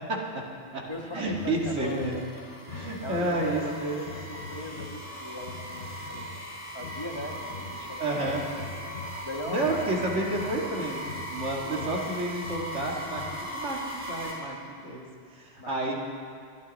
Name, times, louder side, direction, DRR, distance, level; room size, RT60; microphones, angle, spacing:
voice 1, 0.1-0.4 0.7-0.8 1.1-2.2 2.7-4.0 8.0-8.4 9.4-16.0, right 2 dB, 85° right, -1 dB, 2.3 m, -30 dB
voice 2, 0.9-2.2 3.0-6.5 6.7-8.4 9.2-10.0 10.3-10.6 15.6-16.0, left 1 dB, 25° left, 2 dB, 1.3 m, -39 dB
sound 1, 0.9-14.3, right 1 dB, 10° right, 3.2 m, -39 dB
sound 2, 1.1-13.7, left 3 dB, 75° left, 1.2 m, -43 dB
22.0 x 13.0 x 4.1 m, 2.2 s
omnidirectional pair, 1.2 m